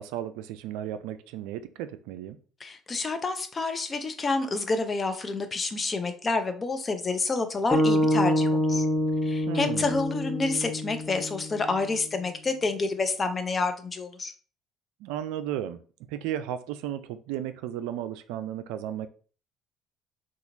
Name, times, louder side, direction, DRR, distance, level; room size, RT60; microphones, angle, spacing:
voice 1, 0.0-2.4 9.5-10.0 15.0-15.8 16.1-19.1, right 11 dB, 80° right, 0.3 m, -34 dB
voice 2, 2.6-8.9 9.2-14.3, left 3 dB, 35° left, 0.6 m, -28 dB
sound 1, 7.7-12.0, left 1 dB, 10° left, 1.0 m, -26 dB
3.0 x 2.3 x 3.9 m
supercardioid pair, 75°, 0 cm